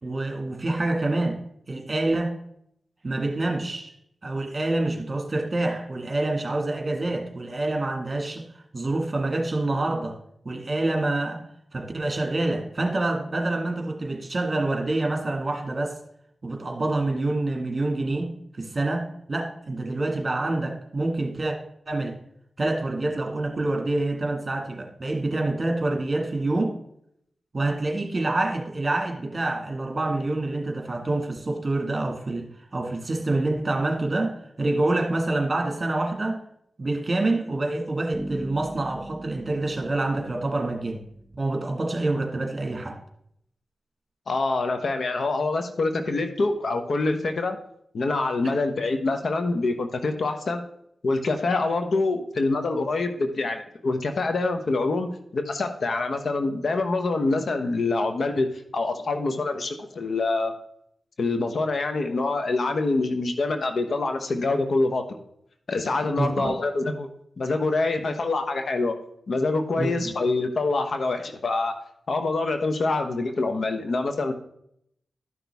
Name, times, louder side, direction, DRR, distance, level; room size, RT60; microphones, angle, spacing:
voice 1, 0.0-1.4 1.7-2.3 3.0-3.9 4.2-10.2 10.5-11.4 11.7-16.0 16.4-21.6 21.9-22.2 22.6-26.7 27.5-36.4 36.8-41.0 41.4-43.0 48.4-48.5 66.2-66.5 69.8-69.9, right 2 dB, 40° right, 2.0 m, -27 dB
Bass guitar, 38.1-41.9, right 1 dB, 15° right, 1.5 m, -41 dB
voice 2, 44.3-47.6 47.9-50.6 51.0-58.5 58.7-60.5 61.2-65.0 65.7-67.1 67.4-69.0 69.3-71.8 72.1-74.3, left 3 dB, 70° left, 1.0 m, -25 dB
12.5 x 6.1 x 3.5 m
cardioid pair, 45°, 0 cm